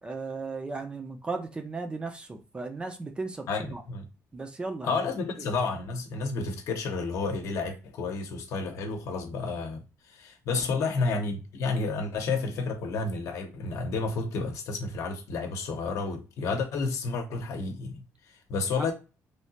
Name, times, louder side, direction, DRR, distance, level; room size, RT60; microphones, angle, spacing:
voice 1, 0.0-3.8 4.3-5.0 10.5-10.6 18.7-18.9, right 3 dB, 15° right, 0.4 m, -36 dB
voice 2, 3.5-4.0 4.8-18.9, left 4 dB, 60° left, 0.8 m, -31 dB
3.2 x 2.8 x 2.7 m
cardioid pair, 160°, 6 cm